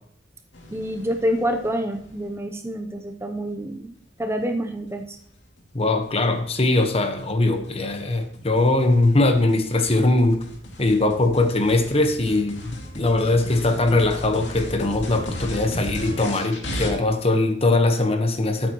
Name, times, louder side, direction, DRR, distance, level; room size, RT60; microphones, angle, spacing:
sound 1, 0.5-2.3 5.2-16.9, equal, 70° left, 2.3 m, -37 dB
voice 1, 0.7-5.2, equal, 15° right, 6 dB, 0.7 m, -27 dB
voice 2, 5.7-10.4 10.8-18.7, left 2 dB, 35° left, 7 dB, 1.2 m, -21 dB
12.5 x 8.9 x 3.0 m, 0.67 s
head